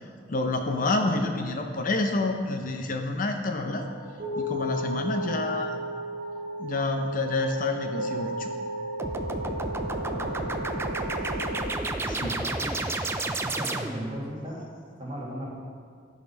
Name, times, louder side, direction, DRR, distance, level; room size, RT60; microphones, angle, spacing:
voice 1, 0.3-3.8 4.4-5.8 6.6-8.5 12.1-12.4, left 2 dB, 50° left, 4 dB, 0.6 m, -28 dB
sound 1, 3.6-11.6, right 1 dB, 60° right, 1.0 m, -34 dB
sound 2, 9.0-14.2, right 2 dB, 15° right, 0.4 m, -31 dB
voice 2, 9.8-10.5 12.0-12.8 13.4-14.6 15.0-15.5, equal, 30° right, -5 dB, 1.9 m, -38 dB
11.0 x 4.2 x 5.2 m, 2.1 s
head